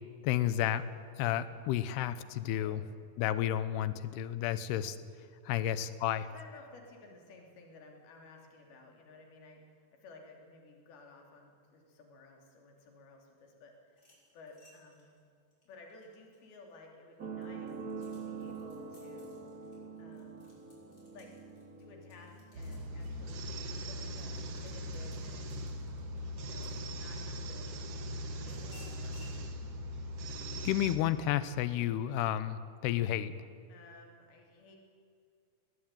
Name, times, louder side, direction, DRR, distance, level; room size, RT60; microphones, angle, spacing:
voice 1, 0.2-0.8 1.2-2.8 3.2-5.0 5.5-6.3 30.6-33.3, left 12 dB, 80° left, 14 dB, 2.7 m, -31 dB
voice 2, 2.5-3.0 5.5-5.9 6.3-14.0 14.3-15.1 15.7-19.4 20.0-20.5 21.1-21.3 21.8-25.6 26.3-27.7 28.4-29.3 33.7-34.8, left 3 dB, 60° left, 1 dB, 4.8 m, -55 dB
sound 1, 13.9-16.7 17.2-27.4 27.9-29.4, left 1 dB, 20° left, 6.3 m, -63 dB
sound 2, 17.2-24.2 25.1-25.2, right 5 dB, 35° right, 1.4 m, -45 dB
sound 3, 22.5-31.0, equal, 65° right, 1.5 m, -40 dB
21.0 x 18.5 x 9.0 m, 2.2 s
omnidirectional pair, 5.0 m